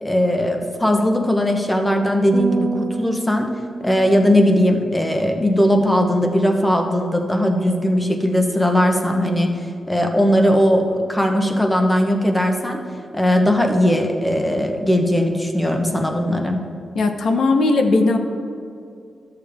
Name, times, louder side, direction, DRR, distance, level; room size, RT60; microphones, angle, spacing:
voice 1, 0.0-3.5 3.8-9.5 9.9-12.8 13.1-16.6, equal, 10° left, 3 dB, 0.9 m, -18 dB
sound 1, 2.3-5.7, right 3 dB, 55° right, 0.6 m, -29 dB
voice 2, 16.9-18.2, left 3 dB, 65° left, 5 dB, 0.8 m, -17 dB
13.0 x 6.8 x 3.5 m, 2.4 s
wide cardioid pair, 125°, 0 cm